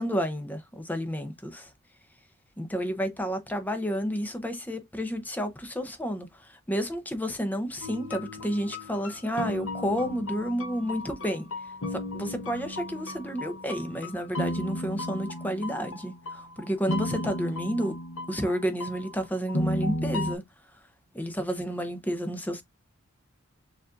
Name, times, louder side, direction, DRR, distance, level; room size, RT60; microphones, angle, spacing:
voice 1, 0.0-1.7 2.6-11.5 11.9-18.0 18.3-20.4 21.1-22.6, equal, 10° left, 0.6 m, -31 dB
sound 1, 7.8-20.3, left 1 dB, 65° left, 0.8 m, -35 dB
6.8 x 2.5 x 2.4 m
head